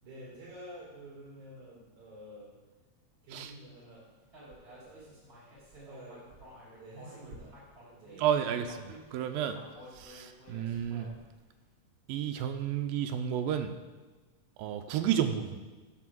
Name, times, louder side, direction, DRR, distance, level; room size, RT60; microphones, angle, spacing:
voice 1, 0.0-2.5 3.2-4.1 4.7-5.1 5.7-6.2 6.7-7.6 8.0-8.3, right 1 dB, 55° right, -6 dB, 5.3 m, -49 dB
Human voice, 4.3-8.2 8.6-11.4, right 1 dB, 35° right, 4.5 m, -52 dB
voice 2, 8.2-9.6 9.9-11.1 12.1-13.8 14.6-15.6, right 9 dB, 80° right, 7 dB, 2.4 m, -31 dB
13.0 x 4.5 x 7.8 m, 1.3 s
omnidirectional pair, 4.2 m